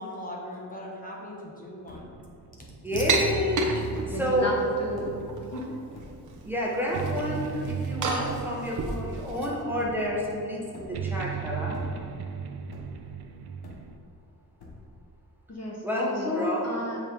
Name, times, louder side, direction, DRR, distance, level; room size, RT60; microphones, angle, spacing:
voice 1, 0.0-2.1, left 1 dB, 20° left, -3 dB, 1.3 m, -39 dB
sound 1, 1.9-2.3 2.9-3.3 3.8-4.4 5.0-5.4 5.9-6.5 6.9-7.4 8.0-8.4 8.8-9.5 9.8-10.3 10.7-11.3 11.6-12.3 12.7-13.2 13.6-14.2 14.6-15.1, left 2 dB, 80° left, 1.5 m, -46 dB
sound 2, 2.1-13.9, right 6 dB, 90° right, 0.6 m, -37 dB
voice 2, 2.8-4.5 6.4-11.8 15.8-16.6, left 1 dB, 5° right, -5 dB, 1.4 m, -29 dB
sound 3, 3.1-4.4 5.0-5.7 5.9-6.5 6.8-9.5, right 4 dB, 55° right, 1.0 m, -31 dB
voice 3, 4.0-5.2 5.5-5.6 15.5-17.0, left 1 dB, 45° left, -2 dB, 1.4 m, -32 dB
7.4 x 5.7 x 4.8 m, 2.6 s
wide cardioid pair, 125°, 37 cm